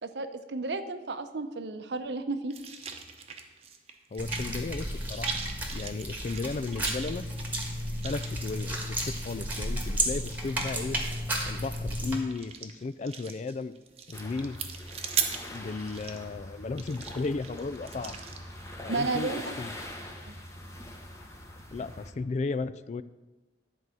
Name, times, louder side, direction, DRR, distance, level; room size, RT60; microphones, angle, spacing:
voice 1, 0.0-2.5 18.9-19.4 20.3-20.4, right 3 dB, 75° right, 9 dB, 0.7 m, -32 dB
sound 1, 2.5-4.8 5.0-18.4, right 7 dB, 35° right, 0.9 m, -39 dB
voice 2, 4.1-5.3 5.7-7.3 8.0-11.0 11.5-13.7 14.1-14.6 15.5-18.2 18.8-19.7 21.7-23.0, left 3 dB, 40° left, 15 dB, 0.3 m, -34 dB
sound 2, 4.2-12.2, right 1 dB, 10° right, 1.5 m, -33 dB
sound 3, 14.1-22.1, left 1 dB, 15° left, 1.1 m, -43 dB
11.0 x 4.7 x 7.7 m, 1.1 s
head